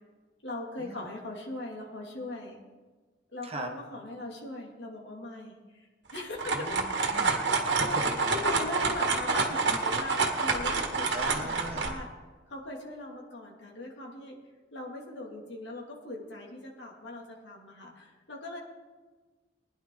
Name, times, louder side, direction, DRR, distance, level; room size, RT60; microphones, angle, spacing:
voice 1, 0.4-2.6 3.3-6.7 7.8-8.0 8.3-12.1 12.5-14.3 14.7-18.6, left 2 dB, 65° left, -1 dB, 2.5 m, -40 dB
sound 1, 6.1-11.9, right 4 dB, 70° right, 1.8 m, -28 dB
voice 2, 6.5-8.0 11.1-11.9, right 2 dB, 30° right, 3 dB, 1.4 m, -39 dB
20.0 x 10.5 x 3.9 m, 1.3 s
head